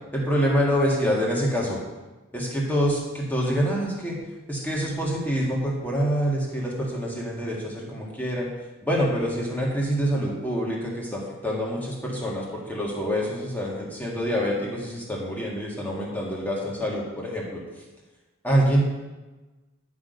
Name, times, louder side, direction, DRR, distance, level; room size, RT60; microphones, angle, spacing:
voice 1, 0.1-1.8 2.3-4.2 4.5-8.5 8.8-17.6 18.4-18.8, equal, 10° left, -4 dB, 2.0 m, -26 dB
11.5 x 6.2 x 5.3 m, 1.2 s
head